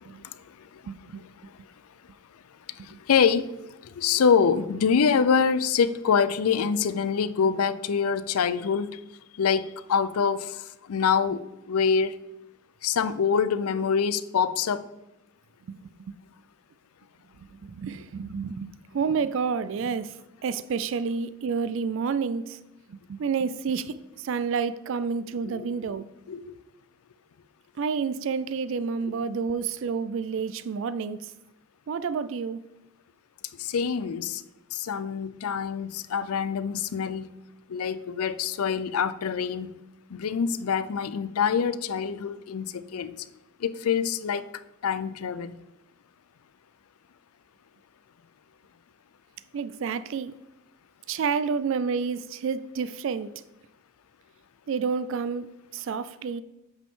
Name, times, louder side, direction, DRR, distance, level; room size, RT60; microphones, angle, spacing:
voice 1, 0.0-1.7 2.7-9.0 9.4-12.2 12.8-14.8 25.4-26.0 26.3-26.6 29.0-29.1 33.6-34.4 34.7-37.3 37.7-39.8 40.1-43.3 43.6-45.6, left 6 dB, 85° left, 0.5 m, -26 dB
voice 2, 0.9-1.2 15.7-15.8 17.6-20.1 20.4-22.6 23.1-24.0 24.2-26.0 27.8-31.2 31.9-32.6 49.5-50.3 51.1-53.3 54.7-55.5 55.7-56.4, right 5 dB, 60° right, 0.3 m, -29 dB
8.4 x 5.1 x 3.6 m
head